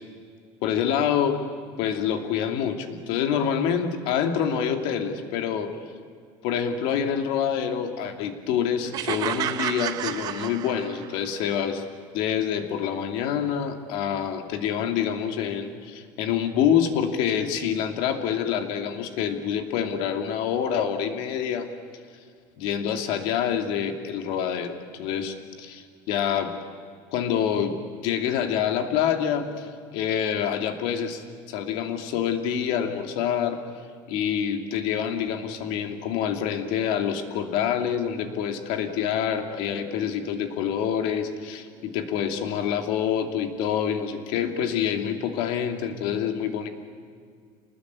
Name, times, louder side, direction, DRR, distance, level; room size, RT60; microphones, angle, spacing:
voice 1, 0.6-1.4 1.8-5.7 6.4-11.8 12.1-21.7 22.6-26.5 27.1-31.2 31.5-33.6 34.1-46.7, left 8 dB, 65° left, 6 dB, 2.8 m, -26 dB
sound 1, 8.9-11.2, right 11 dB, 40° right, 1.1 m, -30 dB
28.0 x 19.5 x 8.5 m, 2.2 s
cardioid pair, 160°, 10 cm